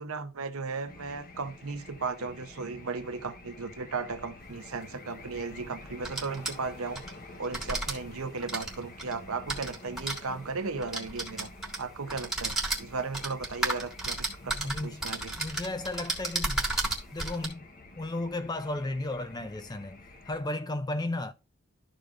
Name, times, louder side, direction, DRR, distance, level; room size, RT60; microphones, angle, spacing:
voice 1, 0.0-7.0 7.4-11.5 11.8-15.3, right 4 dB, 70° right, 0.8 m, -36 dB
sound 1, 0.9-20.4, left 2 dB, 40° left, 1.0 m, -49 dB
sound 2, 4.5-4.6 5.9-7.1 7.4-7.9 8.4-10.2 10.8-11.8 12.1-17.5, right 2 dB, ahead, 1.5 m, -33 dB
voice 2, 14.5-16.7 17.1-17.7 18.0-20.0 20.3-21.3, left 2 dB, 20° left, 0.4 m, -34 dB
12.5 x 5.0 x 2.5 m
head